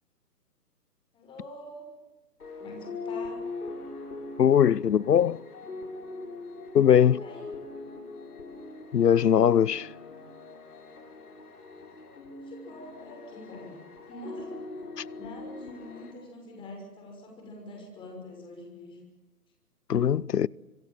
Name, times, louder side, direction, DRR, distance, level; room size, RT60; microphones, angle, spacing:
voice 1, 1.1-1.9 2.6-3.4 7.2-7.5 12.2-13.8 14.1-14.6 15.1-19.0, left 1 dB, 10° left, 6.2 m, -44 dB
sound 1, 2.4-16.1, left 3 dB, 65° left, 7.1 m, -41 dB
voice 2, 4.4-5.4 6.7-7.2 8.9-9.9 15.0-15.1 19.9-20.5, left 9 dB, 90° left, 0.8 m, -21 dB
26.0 x 24.0 x 7.7 m
hypercardioid pair, 160°, 47 cm